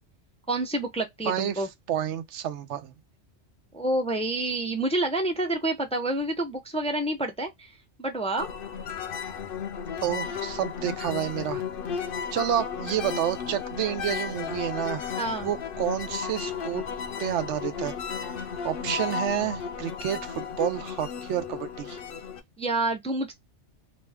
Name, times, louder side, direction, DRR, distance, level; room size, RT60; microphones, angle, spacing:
voice 1, 0.5-1.7 3.7-7.7 8.0-8.5 15.2-15.5 22.6-23.3, right 2 dB, 10° left, 0.4 m, -28 dB
voice 2, 1.2-2.9 10.0-11.6 11.9-15.2 15.4-16.8 17.2-18.0 18.3-22.0, right 10 dB, 75° right, 0.9 m, -30 dB
sound 1, 8.4-22.4, left 7 dB, 60° left, 0.7 m, -34 dB
3.0 x 2.2 x 3.3 m
omnidirectional pair, 1.2 m